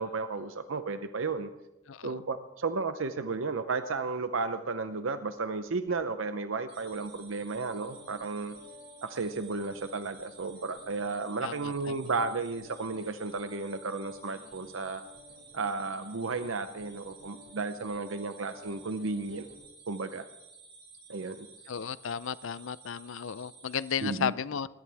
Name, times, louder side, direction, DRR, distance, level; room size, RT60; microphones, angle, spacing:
voice 1, 0.0-1.5 2.0-8.5 9.0-15.0 15.5-19.5 19.9-20.3 21.1-21.5 24.0-24.3, right 4 dB, 90° right, 9 dB, 0.7 m, -33 dB
voice 2, 1.9-2.2 11.4-12.1 21.7-24.7, left 7 dB, 85° left, 17 dB, 0.5 m, -34 dB
Guitar, 5.6-5.9 6.9-19.6, left 1 dB, 65° right, 6.1 m, -54 dB
sound 1, 6.7-24.2, right 4 dB, 45° right, 3.7 m, -54 dB
22.0 x 17.0 x 3.5 m, 0.99 s
head